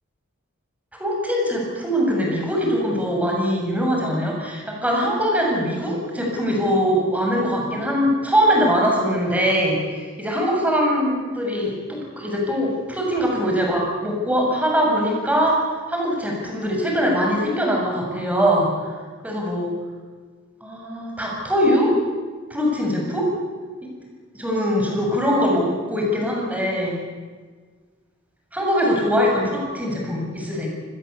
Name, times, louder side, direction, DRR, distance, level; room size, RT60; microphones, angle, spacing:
voice 1, 1.0-15.6 15.9-18.7 19.2-19.7 20.6-21.9 22.5-23.3 23.8-23.9 24.3-27.0 28.5-30.7, equal, 10° right, -1 dB, 7.5 m, -22 dB
25.5 x 20.5 x 8.3 m, 1.5 s
head